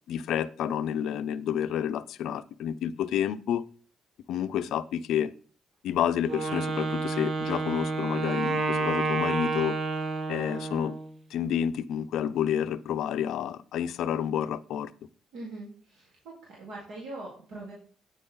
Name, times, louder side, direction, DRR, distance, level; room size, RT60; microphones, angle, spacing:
voice 1, 0.1-3.6 4.3-5.3 5.8-9.8 10.3-11.0 11.3-14.9, left 9 dB, 65° left, 12 dB, 0.5 m, -29 dB
Wind instrument woodwind instrument, 6.3-11.1, right 3 dB, 35° right, 0.8 m, -29 dB
voice 2, 15.3-17.7, right 2 dB, 70° right, -4 dB, 3.5 m, -42 dB
9.4 x 8.2 x 3.8 m, 0.42 s
cardioid pair, 165°, 0 cm